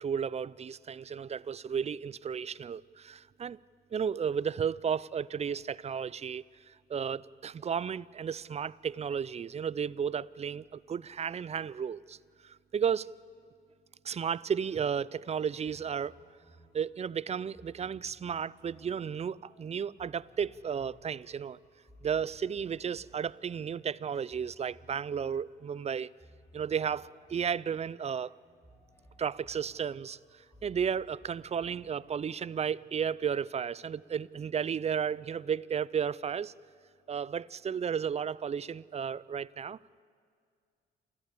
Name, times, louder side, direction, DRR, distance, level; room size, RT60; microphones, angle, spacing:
voice 1, 0.0-3.6 3.9-12.2 12.4-13.1 14.0-16.1 16.7-21.6 22.0-26.1 26.5-28.3 29.2-30.2 30.6-36.5 37.1-39.8, right 7 dB, 35° right, 0.4 m, -33 dB
sound 1, 15.6-32.9, equal, 15° left, 5.6 m, -60 dB
27.5 x 14.5 x 8.4 m
cardioid pair, 90°, 20 cm